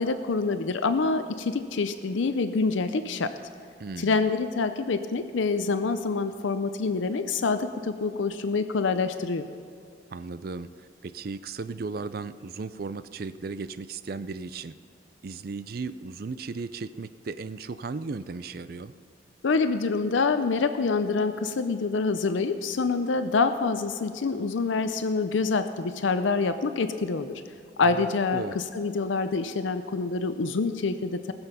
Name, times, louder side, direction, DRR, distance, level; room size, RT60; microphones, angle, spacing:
voice 1, 0.0-3.3 4.0-9.5 19.4-27.4 27.8-31.3, left 4 dB, 85° left, 10 dB, 0.6 m, -26 dB
voice 2, 3.8-4.3 10.1-10.7 11.0-14.7 15.2-18.9 27.8-28.6, right 4 dB, 50° right, 14 dB, 0.4 m, -36 dB
19.5 x 7.1 x 5.6 m, 2.4 s
head